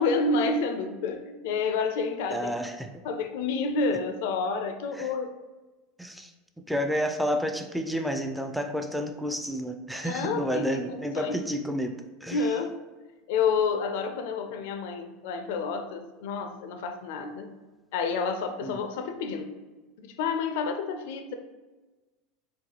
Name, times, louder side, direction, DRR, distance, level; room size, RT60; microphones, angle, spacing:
voice 1, 0.0-2.5 3.0-5.3 10.0-11.4 12.3-12.8 13.3-17.5 17.9-19.5 20.0-21.3, left 4 dB, 70° left, 6 dB, 0.4 m, -29 dB
voice 2, 2.3-2.9 4.9-5.1 6.0-6.3 6.7-12.4 18.6-18.8, equal, ahead, 5 dB, 0.4 m, -30 dB
3.9 x 2.3 x 2.9 m, 1.2 s
hypercardioid pair, 95°, 0 cm